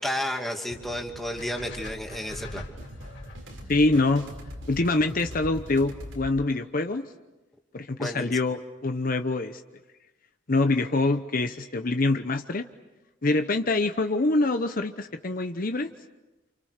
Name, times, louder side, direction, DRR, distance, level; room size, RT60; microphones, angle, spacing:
voice 1, 0.0-2.7 8.0-8.3, equal, ahead, 1 dB, 2.5 m, -32 dB
sound 1, 0.7-6.3, equal, 85° right, 5.7 m, -42 dB
sound 2, 1.4-5.5, left 2 dB, 60° left, 4.7 m, -44 dB
voice 2, 3.7-4.3 4.7-7.1 7.7-9.6 10.5-12.6 13.2-15.9, left 2 dB, 45° left, 7 dB, 0.9 m, -25 dB
29.5 x 29.0 x 6.6 m, 1.1 s
head